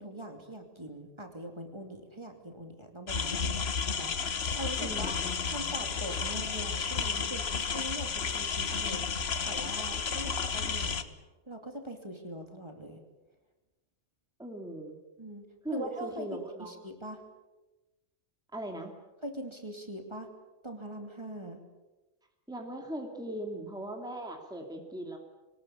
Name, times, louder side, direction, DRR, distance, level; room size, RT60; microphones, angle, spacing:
voice 1, 0.0-7.5 7.7-9.0 9.4-11.1 11.5-13.0 15.2-17.2 19.2-20.3 20.6-21.6, right 1 dB, 20° right, 4 dB, 2.7 m, -42 dB
sound 1, 3.1-11.0, left 5 dB, 55° left, 1.4 m, -32 dB
voice 2, 4.8-5.7 14.4-15.0 15.6-16.7 18.5-18.9 22.5-25.2, right 1 dB, 5° right, 3 dB, 2.4 m, -39 dB
23.5 x 19.5 x 8.7 m, 1.1 s
omnidirectional pair, 1.3 m